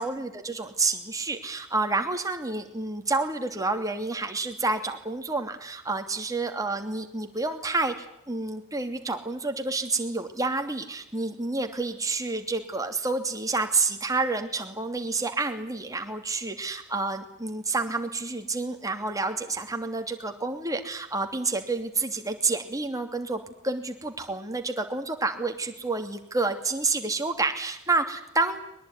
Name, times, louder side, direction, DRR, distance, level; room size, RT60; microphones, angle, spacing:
voice 1, 0.0-28.6, right 3 dB, 15° right, 5 dB, 2.8 m, -29 dB
22.5 x 20.5 x 9.9 m, 0.76 s
head